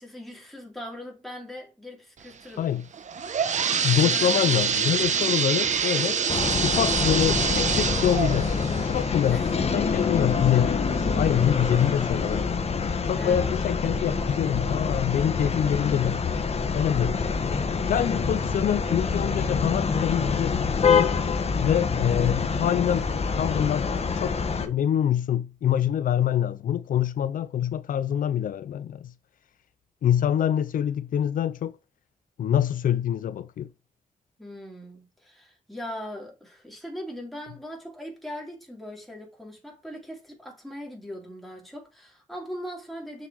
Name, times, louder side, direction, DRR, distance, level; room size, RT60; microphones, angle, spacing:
voice 1, 0.0-2.7 3.9-4.7 9.3-9.6 9.9-10.1 13.1-13.6 34.4-43.3, equal, ahead, 3.9 m, -40 dB
sound 1, 2.9-10.5 11.0-11.1 11.9-12.0 12.4-12.5, right 6 dB, 60° right, 1.1 m, -26 dB
voice 2, 3.7-6.2 6.6-8.5 8.8-9.4 9.7-12.6 13.1-16.2 16.7-17.5 17.9-20.5 20.8-21.2 21.6-23.1 23.3-29.0 30.0-31.7 32.4-33.7, left 10 dB, 90° left, 0.6 m, -25 dB
sound 2, 6.3-24.7, left 5 dB, 50° left, 1.5 m, -26 dB
6.8 x 6.6 x 4.7 m
wide cardioid pair, 105°, 14 cm